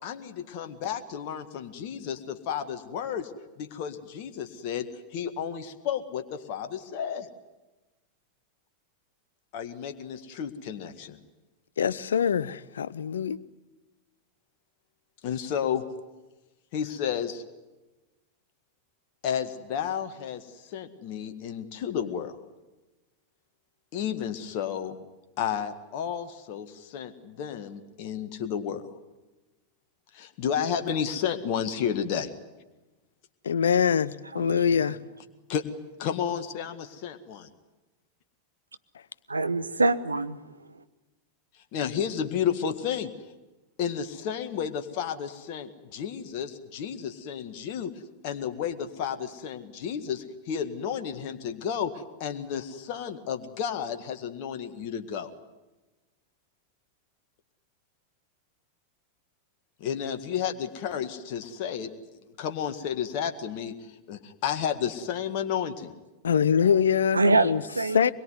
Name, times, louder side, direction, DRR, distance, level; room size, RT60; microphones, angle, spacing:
voice 1, 0.0-3.3 3.6-4.9 5.1-7.3 9.5-11.2 15.2-15.8 16.7-17.4 19.2-22.3 23.9-25.0 25.4-28.8 30.1-32.3 35.5-35.6 36.0-37.5 41.7-43.1 43.8-47.9 48.2-51.9 52.2-55.3 59.8-61.9 62.4-65.9, left 8 dB, 45° left, 7 dB, 1.8 m, -32 dB
voice 2, 11.8-13.4 33.4-35.0 66.2-67.6 67.9-68.1, left 7 dB, 65° left, 18 dB, 0.8 m, -24 dB
voice 3, 34.3-34.9 39.3-40.4 67.1-67.5 67.8-68.1, right 3 dB, 80° right, 12 dB, 1.1 m, -24 dB
24.0 x 22.0 x 9.6 m, 1.1 s
figure-of-eight pair, 90°, 0 cm